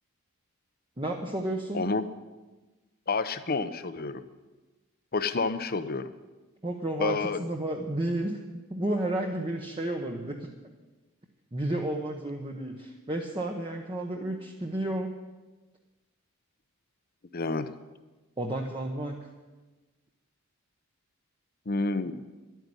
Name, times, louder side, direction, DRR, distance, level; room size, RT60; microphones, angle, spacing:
voice 1, 1.0-1.8 6.6-8.4 8.7-10.5 11.5-15.1 18.4-19.3, right 1 dB, 20° right, 1 dB, 1.0 m, -32 dB
voice 2, 1.7-2.1 3.1-4.2 5.1-6.1 7.0-7.4 17.3-17.7 21.7-22.1, left 3 dB, 40° left, 12 dB, 0.7 m, -29 dB
12.0 x 9.3 x 9.8 m, 1.2 s
head